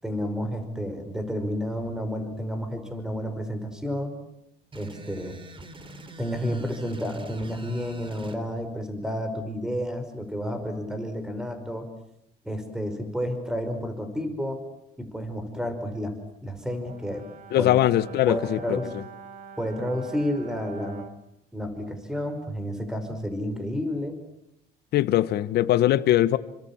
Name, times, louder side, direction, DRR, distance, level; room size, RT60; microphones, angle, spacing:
voice 1, 0.0-4.2 4.8-5.4 6.2-11.9 12.4-14.6 15.0-16.1 16.4-17.2 17.6-17.7 18.3-18.9 19.6-21.0 21.5-24.2, equal, 5° right, 8 dB, 5.4 m, -31 dB
sound 1, 4.7-8.4, right 2 dB, 30° right, 3.6 m, -44 dB
Brass instrument, 16.9-21.2, right 6 dB, 50° right, 2.5 m, -45 dB
voice 2, 17.5-18.8 24.9-26.4, left 13 dB, 75° left, 14 dB, 1.4 m, -21 dB
29.5 x 25.0 x 7.4 m, 0.81 s
cardioid pair, 110°, 17 cm